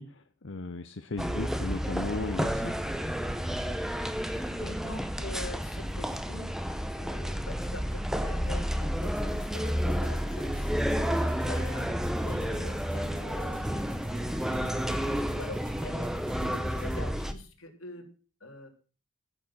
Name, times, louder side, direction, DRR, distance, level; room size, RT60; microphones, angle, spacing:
voice 1, 0.0-2.9, left 3 dB, 65° left, 9 dB, 0.7 m, -36 dB
sound 1, 1.2-17.3, equal, ahead, 0.8 m, -31 dB
voice 2, 3.5-14.7 15.2-18.0 18.4-18.7, left 2 dB, 90° left, 3 dB, 3.3 m, -45 dB
sound 2, 8.4-8.7 9.2-9.4 9.9-11.7 12.2-12.4 12.9-14.7 15.2-15.4 15.9-17.4, equal, 20° left, 1.2 m, -47 dB
sound 3, 9.0-17.0, right 2 dB, 40° right, 4.2 m, -48 dB
15.0 x 7.1 x 6.0 m, 0.37 s
head